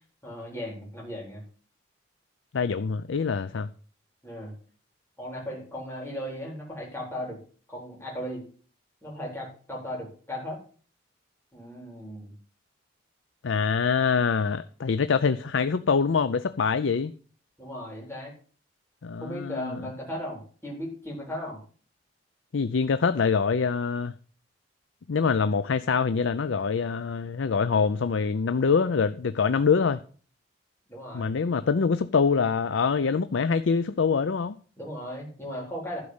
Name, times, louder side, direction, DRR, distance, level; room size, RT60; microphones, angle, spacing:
voice 1, 0.2-1.4 4.2-4.5 5.2-7.4 7.7-8.4 9.0-10.6 11.5-12.3 17.6-18.3 19.2-21.6 30.9-31.3 34.8-36.0, equal, 15° left, 4.1 m, -36 dB
voice 2, 2.5-3.7 13.4-17.1 19.0-19.8 22.5-24.1 25.1-30.0 31.1-34.6, left 5 dB, 85° left, 0.5 m, -25 dB
12.0 x 5.3 x 8.0 m
head